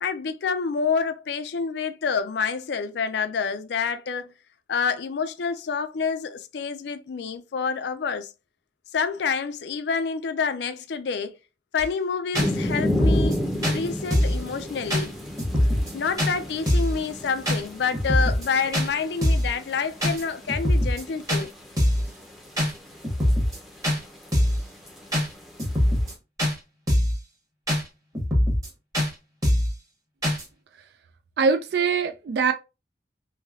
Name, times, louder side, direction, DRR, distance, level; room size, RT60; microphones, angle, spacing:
voice 1, 0.0-4.3 4.7-8.3 8.9-11.4 11.7-13.4 13.7-15.1 15.9-21.5, left 5 dB, 70° left, 0.4 m, -28 dB
sound 1, 11.8-11.9 12.3-12.5 12.8-13.4 13.6-13.8 14.1-14.4 14.9-15.1 15.4-15.9 16.2-16.3 16.7-17.0 17.5-17.6 17.9-18.5 18.7-18.9 19.2-19.5 20.0-20.2 20.5-21.0 21.3-21.4 21.8-22.1 22.6-22.7 23.0-23.6 23.8-24.0 24.3-24.6 25.1-25.3 25.6-26.1 26.4-26.5 26.9-27.2 27.7-27.8 28.1-28.7 28.9-29.1 29.4-29.7 30.2-30.4, equal, 20° right, 1.1 m, -22 dB
sound 2, 12.3-26.1, left 1 dB, ahead, 0.6 m, -34 dB
voice 2, 31.4-32.5, right 5 dB, 65° right, 0.3 m, -22 dB
3.1 x 2.8 x 2.4 m
head